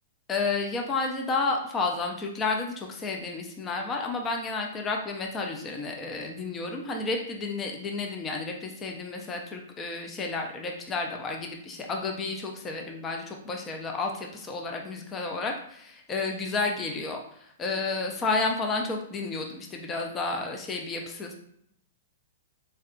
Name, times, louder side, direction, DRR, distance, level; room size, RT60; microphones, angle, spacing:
voice 1, 0.3-17.2 17.6-21.3, left 3 dB, 15° left, 2 dB, 0.3 m, -31 dB
3.6 x 2.1 x 2.4 m, 0.70 s
hypercardioid pair, 160°, 0 cm